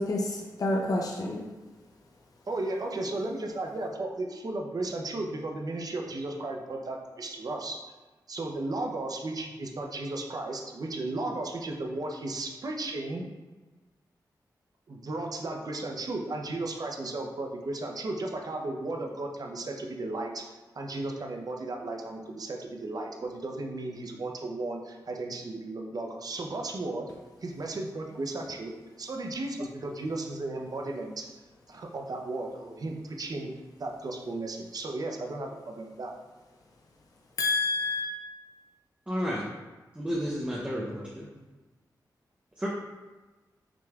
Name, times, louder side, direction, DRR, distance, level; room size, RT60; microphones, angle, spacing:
voice 1, 0.0-1.4 37.4-38.1, left 2 dB, 55° left, -1 dB, 0.6 m, -28 dB
voice 2, 2.5-7.8 8.3-13.3 14.9-20.4 20.7-27.1 27.4-28.7 29.0-31.3 31.7-33.5 33.8-36.1, right 2 dB, 55° right, 2 dB, 0.7 m, -35 dB
voice 3, 39.1-39.4 39.9-41.3 42.6-42.7, equal, 15° right, -5 dB, 0.8 m, -31 dB
5.9 x 3.3 x 2.4 m, 1.2 s
cardioid pair, 60°, 8 cm